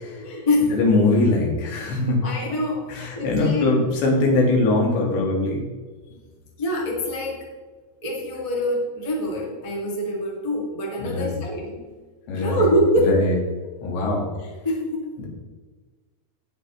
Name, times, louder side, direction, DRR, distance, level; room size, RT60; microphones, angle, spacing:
voice 1, 0.2-0.8 2.2-3.7 6.6-7.4 8.0-11.7 12.3-13.2 14.5-15.0, equal, 35° left, -3 dB, 0.5 m, -24 dB
voice 2, 0.7-2.2 2.9-5.7 11.0-11.3 11.7-11.8 12.3-12.6 13.0-13.4 13.8-14.3 15.2-15.3, left 2 dB, 75° left, -1 dB, 4.1 m, -21 dB
18.0 x 6.0 x 3.2 m, 1.4 s
omnidirectional pair, 5.2 m